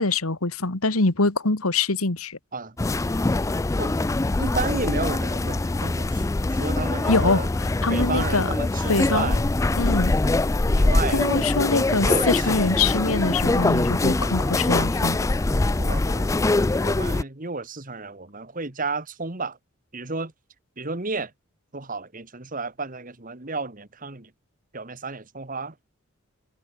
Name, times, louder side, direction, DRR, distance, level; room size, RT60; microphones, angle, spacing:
voice 1, 0.0-2.4 7.1-8.5 8.9-9.4 9.8-10.1 11.1-15.2, left 3 dB, 90° left, 2.2 m, -24 dB
sound 1, 2.8-17.2, left 2 dB, 15° left, 0.3 m, -23 dB
voice 2, 4.4-6.2 6.6-7.5 7.9-9.4 10.7-11.2 12.0-12.5 15.7-16.5 16.8-19.6 19.9-20.3 20.8-21.3 21.7-24.3 24.7-25.7, right 3 dB, 40° right, 1.8 m, -32 dB
head